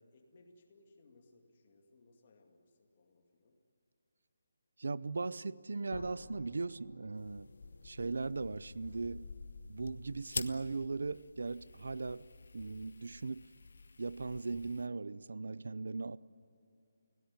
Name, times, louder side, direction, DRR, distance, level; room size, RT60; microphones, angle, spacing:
voice 1, 0.0-3.5, left 2 dB, 25° left, 2.2 m, -64 dB
voice 2, 4.8-7.5 7.8-9.3 9.7-12.3 12.5-13.4 14.0-16.2, right 3 dB, 60° right, 0.6 m, -38 dB
sound 1, 5.9-10.7, left 3 dB, 80° left, 1.7 m, -55 dB
sound 2, 7.2-14.9, left 4 dB, 50° left, 1.0 m, -48 dB
30.0 x 17.5 x 9.6 m
hypercardioid pair, 180°, 0 cm